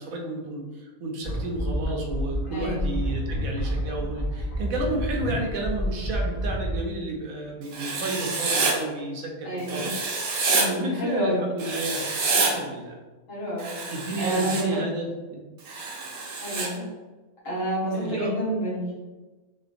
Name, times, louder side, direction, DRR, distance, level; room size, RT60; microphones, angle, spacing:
voice 1, 0.0-9.9 10.7-12.0 12.4-13.0 13.9-15.4 17.9-18.3, right 2 dB, 80° right, 0 dB, 1.0 m, -32 dB
sound 1, 1.2-6.8, equal, 50° left, 0.8 m, -29 dB
voice 2, 2.5-2.9 9.4-9.9 10.5-11.4 13.3-13.7 14.2-14.8 16.4-16.8 17.4-18.9, right 1 dB, 65° left, -8 dB, 1.4 m, -28 dB
Writing, 7.7-8.7 9.7-10.7 11.6-12.5 13.6-14.6 15.7-16.7, right 3 dB, 60° right, 0.7 m, -27 dB
4.0 x 2.2 x 2.5 m, 1.2 s
omnidirectional pair, 1.5 m